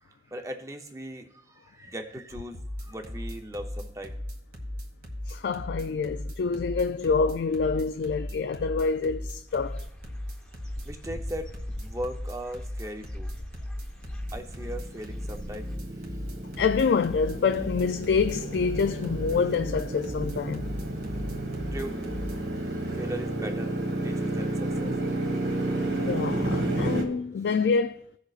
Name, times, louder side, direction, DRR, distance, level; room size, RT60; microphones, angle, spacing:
voice 1, 0.0-4.2 10.8-11.5 11.8-13.3 14.3-15.7 21.7-22.2 22.7-23.7 24.0-25.0, equal, 20° right, 0.7 m, -38 dB
sound 1, 2.5-22.4, left 1 dB, 55° right, 1.6 m, -36 dB
voice 2, 5.3-9.9 16.6-20.6 26.0-28.0, left 5 dB, 75° left, 0.3 m, -26 dB
Dog / Bird, 9.5-15.8, equal, 5° left, 1.1 m, -44 dB
Motorcycle, 14.4-27.0, right 1 dB, 75° right, 1.5 m, -31 dB
16.5 x 6.4 x 2.4 m
head